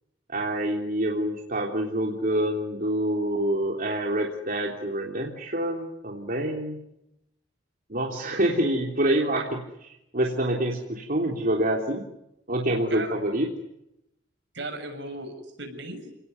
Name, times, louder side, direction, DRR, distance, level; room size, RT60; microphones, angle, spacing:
voice 1, 0.3-6.8 7.9-12.0 12.5-13.5, right 1 dB, 50° right, 0 dB, 3.4 m, -26 dB
voice 2, 14.5-16.1, right 2 dB, 70° right, 6 dB, 7.0 m, -36 dB
30.0 x 19.5 x 9.4 m, 0.86 s
head